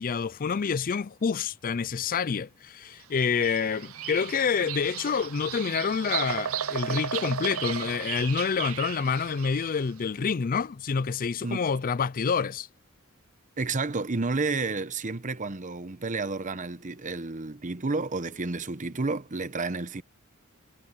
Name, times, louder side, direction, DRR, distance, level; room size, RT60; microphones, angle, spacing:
voice 1, 0.0-12.7, left 6 dB, 40° left, 0.4 m, -28 dB
Bird vocalization bird call bird song, 3.2-9.8, right 9 dB, 75° right, 0.8 m, -35 dB
voice 2, 13.6-20.0, right 3 dB, 35° right, 0.9 m, -31 dB
head